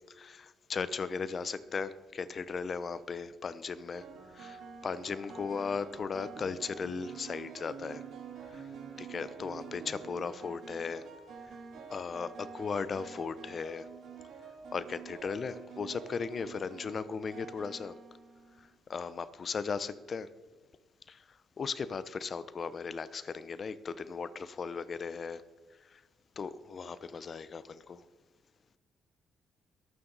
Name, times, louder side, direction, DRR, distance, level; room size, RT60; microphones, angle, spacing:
voice 1, 0.2-4.0 4.3-4.6 4.8-8.0 9.0-11.0 11.9-13.9 14.7-17.9 18.9-20.3 21.1-21.2 21.6-25.4 26.4-28.0, left 5 dB, 45° left, 15 dB, 0.8 m, -37 dB
sound 1, 2.3-2.7 3.9-18.8, right 6 dB, 70° right, 2.1 m, -48 dB
21.5 x 8.9 x 4.0 m, 1.3 s
cardioid pair, 90°, 0 cm